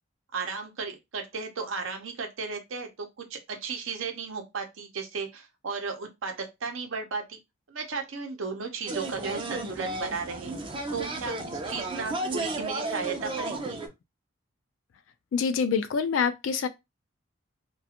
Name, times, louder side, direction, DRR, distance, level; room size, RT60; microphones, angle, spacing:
voice 1, 0.3-7.4 7.7-10.5 10.9-13.8, right 5 dB, 80° right, 0.7 m, -35 dB
sound 1, 8.9-13.9, right 2 dB, 25° right, 0.4 m, -33 dB
voice 2, 15.3-16.7, left 6 dB, 70° left, 0.3 m, -26 dB
2.4 x 2.2 x 2.7 m
head